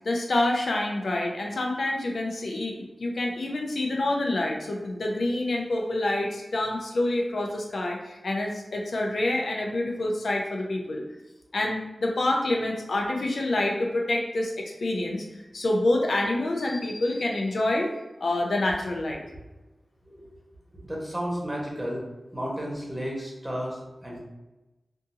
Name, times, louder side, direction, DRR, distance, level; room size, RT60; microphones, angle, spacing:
voice 1, 0.0-2.7 3.0-11.0 11.5-15.2 15.5-17.9 18.2-19.2, left 2 dB, 80° left, 0 dB, 0.5 m, -27 dB
voice 2, 20.8-22.0 22.3-24.2, equal, 15° right, -3 dB, 1.2 m, -32 dB
3.7 x 2.6 x 2.7 m, 1.1 s
cardioid pair, 55°, 0 cm